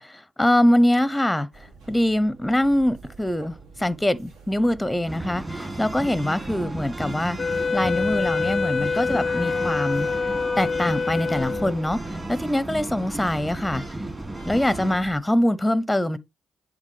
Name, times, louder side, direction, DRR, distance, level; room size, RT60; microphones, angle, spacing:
voice 1, 0.0-1.5 1.9-7.4 7.7-10.1 10.6-12.0 12.3-13.8 14.5-16.2, left 1 dB, 10° left, 0.7 m, -23 dB
sound 1, 1.5-15.2, right 4 dB, 75° right, 2.6 m, -47 dB
sound 2, 5.1-15.0, right 1 dB, 20° right, 2.9 m, -34 dB
Wind instrument woodwind instrument, 7.4-11.9, left 5 dB, 50° left, 0.4 m, -26 dB
10.5 x 3.9 x 3.3 m
hypercardioid pair, 40°, 0 cm